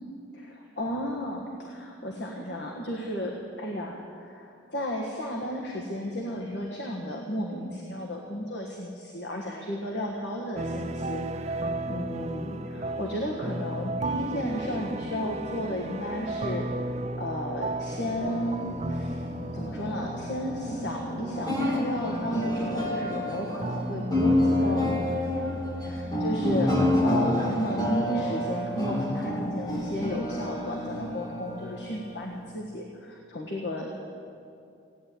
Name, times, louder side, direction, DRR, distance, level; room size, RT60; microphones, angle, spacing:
voice 1, 0.3-16.7 17.2-19.2 19.5-25.4 25.8-34.0, equal, 65° left, -1 dB, 1.6 m, -34 dB
sound 1, 10.5-25.2, right 1 dB, 35° right, 0.6 m, -35 dB
sound 2, 17.8-32.5, left 1 dB, 20° left, 1.8 m, -29 dB
16.5 x 9.7 x 8.5 m, 2.5 s
head